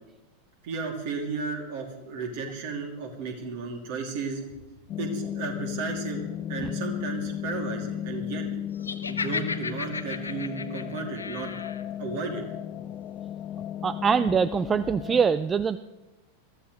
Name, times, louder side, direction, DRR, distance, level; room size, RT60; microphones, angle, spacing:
voice 1, 0.6-4.4 5.0-6.2 6.5-8.5 9.1-11.5 12.0-12.4, right 4 dB, 50° right, 2 dB, 2.9 m, -34 dB
sound 1, 4.9-15.3, left 11 dB, 30° left, 0.5 m, -35 dB
Laughter, 8.8-11.8, left 4 dB, 75° left, 0.9 m, -34 dB
voice 2, 13.8-15.8, right 6 dB, 20° right, 16 dB, 0.4 m, -23 dB
21.5 x 14.5 x 3.3 m, 1.1 s
figure-of-eight pair, 90°, 0 cm